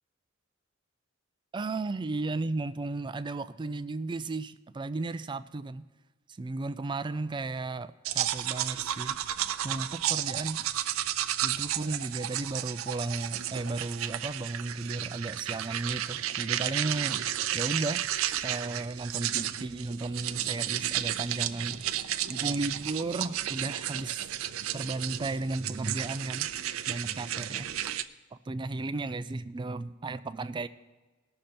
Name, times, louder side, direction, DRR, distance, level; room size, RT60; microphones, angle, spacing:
voice 1, 1.5-5.8 6.4-9.2 9.6-10.7 11.4-18.1 18.4-24.2 24.7-26.5 26.9-27.8 28.3-30.7, right 2 dB, 25° right, 13 dB, 0.4 m, -34 dB
sound 1, 8.0-28.0, right 12 dB, 85° right, 0.5 m, -33 dB
19.0 x 6.6 x 4.3 m, 1.2 s
head